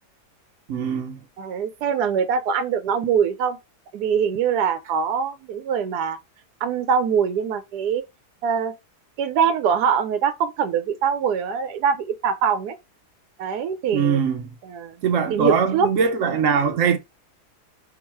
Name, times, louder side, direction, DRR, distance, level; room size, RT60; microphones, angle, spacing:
voice 1, 0.7-1.2 13.9-14.4 15.0-17.0, right 6 dB, 60° right, 1.1 m, -21 dB
voice 2, 1.4-3.6 3.9-6.2 6.6-8.0 8.4-8.7 9.2-12.7 13.4-14.2 14.6-15.0 15.3-15.9, right 7 dB, 80° right, 1.1 m, -23 dB
3.9 x 2.3 x 4.3 m
omnidirectional pair, 1.7 m